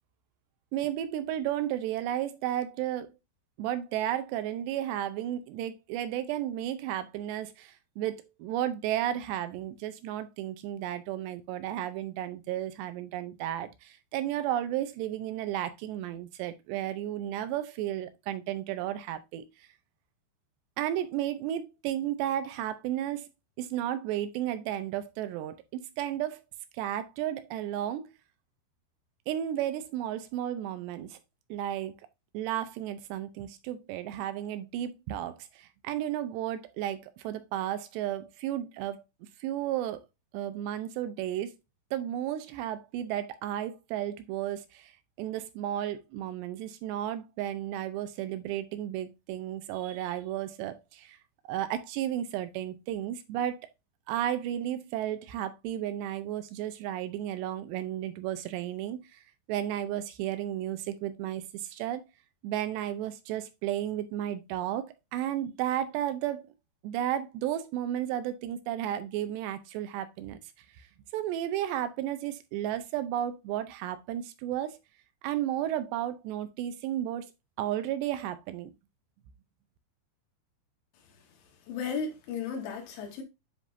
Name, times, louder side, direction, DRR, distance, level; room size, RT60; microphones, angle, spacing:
voice 1, 0.7-3.1 3.6-19.5 20.8-23.3 23.6-26.4 26.7-28.1 29.3-31.2 31.5-31.9 32.3-39.0 39.4-40.0 40.3-41.6 41.9-44.9 45.2-51.2 51.5-53.7 54.1-59.2 59.5-62.1 62.4-66.5 66.8-70.4 70.8-70.9 71.1-74.8 75.2-77.3 77.6-78.7, right 12 dB, 80° right, 2.8 m, -33 dB
voice 2, 81.7-83.2, left 6 dB, 85° left, 3.9 m, -34 dB
10.0 x 3.8 x 2.6 m
omnidirectional pair, 5.0 m